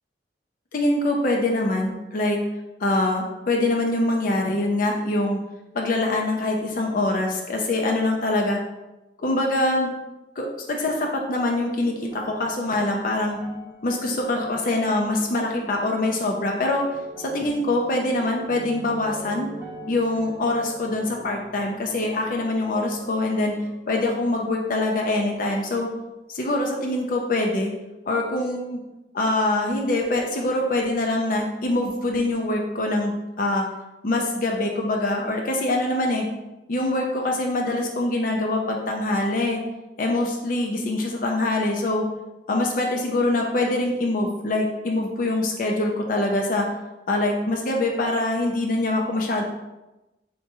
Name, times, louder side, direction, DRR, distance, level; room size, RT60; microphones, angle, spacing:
voice 1, 0.7-2.4 2.8-5.4 5.7-8.6 9.2-9.9 10.4-13.4 13.8-16.9 17.2-19.5 19.9-23.5 23.9-25.9 26.3-27.7 28.1-28.8 29.1-33.6 34.0-36.2 36.7-39.6 40.0-42.0 42.5-46.7 47.1-49.4, left 2 dB, 50° left, 1 dB, 0.5 m, -24 dB
sound 1, 10.9-24.4 24.7-25.7 26.4-26.5, right 1 dB, 15° right, 0.5 m, -44 dB
4.3 x 3.4 x 2.9 m, 1.0 s
head